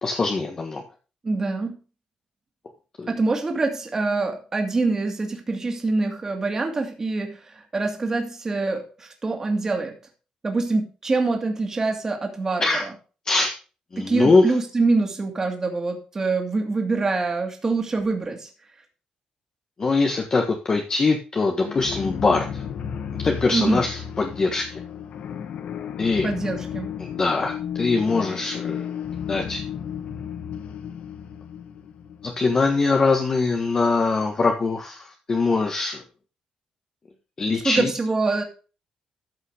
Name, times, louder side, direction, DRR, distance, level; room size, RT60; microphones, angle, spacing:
voice 1, 0.0-0.8 3.0-3.1 12.6-12.8 13.3-13.5 13.9-14.5 19.8-22.6 23.2-24.8 26.0-26.3 27.0-28.9 29.3-29.6 32.2-36.0 37.4-37.9, left 3 dB, 30° left, 3 dB, 1.4 m, -22 dB
voice 2, 1.2-1.8 3.1-10.0 10.4-12.9 14.0-18.5 23.5-23.8 26.2-26.9 37.6-38.4, right 3 dB, 25° right, 3 dB, 2.5 m, -25 dB
sound 1, 21.6-34.2, left 8 dB, 65° left, 1.1 m, -34 dB
13.5 x 5.6 x 5.0 m, 0.35 s
cardioid pair, 135°, 2 cm